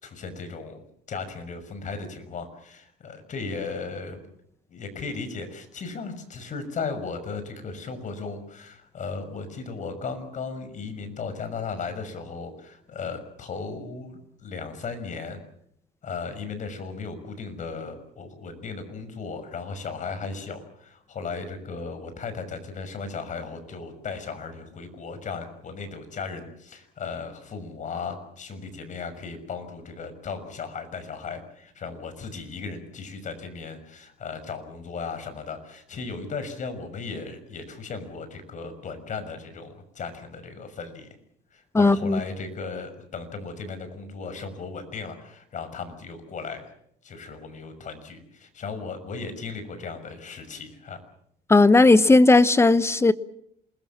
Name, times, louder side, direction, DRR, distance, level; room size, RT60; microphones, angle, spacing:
voice 1, 0.0-4.2 4.7-15.4 16.0-41.1 41.5-46.7 47.0-51.0, left 4 dB, 45° left, 6.2 m, -36 dB
voice 2, 41.7-42.2 51.5-53.1, left 3 dB, 15° left, 1.1 m, -16 dB
28.0 x 21.0 x 7.4 m
cardioid pair, 110°, 17 cm